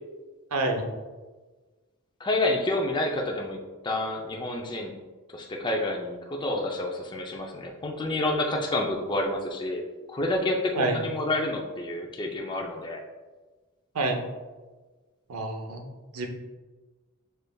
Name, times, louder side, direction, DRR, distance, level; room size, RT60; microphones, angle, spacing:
voice 1, 0.5-0.8 10.8-11.0 13.9-14.2 15.3-15.8 16.1-16.3, right 2 dB, 75° right, 3 dB, 0.7 m, -27 dB
voice 2, 2.2-4.9 5.3-9.8 10.1-13.0, left 2 dB, 20° left, 1 dB, 0.4 m, -29 dB
6.5 x 3.3 x 2.2 m, 1.3 s
head